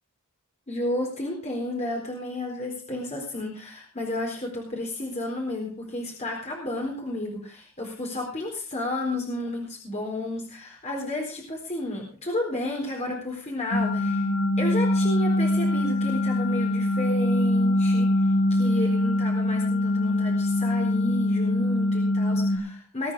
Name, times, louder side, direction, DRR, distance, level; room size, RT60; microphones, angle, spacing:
voice 1, 0.7-14.3 14.6-18.1 18.5-23.1, left 1 dB, 30° left, 0 dB, 4.1 m, -32 dB
sound 1, 13.7-22.6, left 1 dB, 65° left, 5.7 m, -23 dB
20.5 x 9.5 x 4.8 m, 0.36 s
head